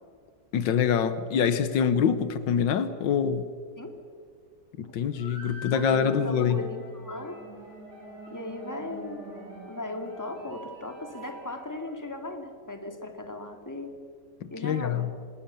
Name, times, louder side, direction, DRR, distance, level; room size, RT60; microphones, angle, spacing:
voice 1, 0.5-3.5 4.8-6.7 14.4-15.1, left 7 dB, 85° left, 13 dB, 1.7 m, -25 dB
sound 1, 5.1-12.2, equal, 65° right, 8.4 m, -48 dB
voice 2, 5.7-7.4 8.3-9.3 9.6-13.9 14.5-15.1, left 2 dB, 10° left, 4 dB, 2.4 m, -37 dB
sound 2, 6.6-11.7, right 1 dB, 35° right, 4.7 m, -47 dB
26.5 x 20.0 x 7.0 m, 2.1 s
omnidirectional pair, 1.9 m